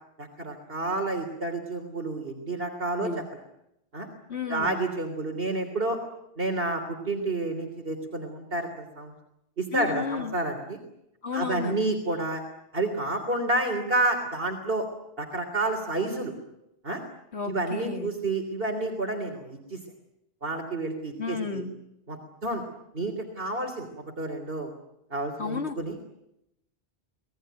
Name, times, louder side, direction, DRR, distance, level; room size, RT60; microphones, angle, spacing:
voice 1, 0.2-3.1 3.9-4.1 4.5-6.0 6.4-9.1 9.6-10.8 11.3-12.4 12.7-14.9 15.2-16.3 16.8-17.0 17.5-19.8 20.4-21.6 22.1-22.6 22.9-23.9 24.2-24.7 25.1-26.0, right 2 dB, 60° right, 4 dB, 3.6 m, -29 dB
voice 2, 4.3-4.8 9.7-10.3 11.2-11.7 17.3-18.1 21.2-21.7 25.4-25.8, left 5 dB, 90° left, 5 dB, 2.5 m, -32 dB
26.0 x 19.0 x 9.4 m, 0.83 s
omnidirectional pair, 1.1 m